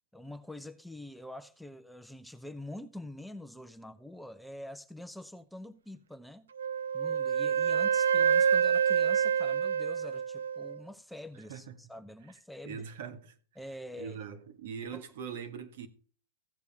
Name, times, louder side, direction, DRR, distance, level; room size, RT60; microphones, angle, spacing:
voice 1, 0.1-6.5 6.9-12.9 13.6-14.2 14.9-15.0, left 1 dB, ahead, 0.7 m, -45 dB
Wind instrument woodwind instrument, 6.6-10.8, right 7 dB, 85° right, 0.4 m, -27 dB
voice 2, 11.3-11.8 12.6-13.4 13.9-15.9, right 7 dB, 65° right, 1.5 m, -42 dB
15.5 x 7.0 x 3.6 m
hypercardioid pair, 110°, 0 cm